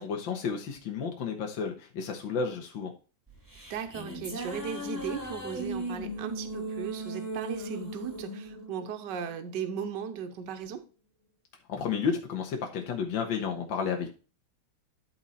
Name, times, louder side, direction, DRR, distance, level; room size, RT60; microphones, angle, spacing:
voice 1, 0.0-2.9 11.7-14.1, left 6 dB, 75° left, 2 dB, 1.9 m, -32 dB
sound 1, 3.3-9.8, right 1 dB, 10° right, 1.9 m, -38 dB
voice 2, 3.7-10.8, right 7 dB, 65° right, 7 dB, 1.6 m, -37 dB
12.0 x 4.4 x 4.1 m, 0.35 s
omnidirectional pair, 2.1 m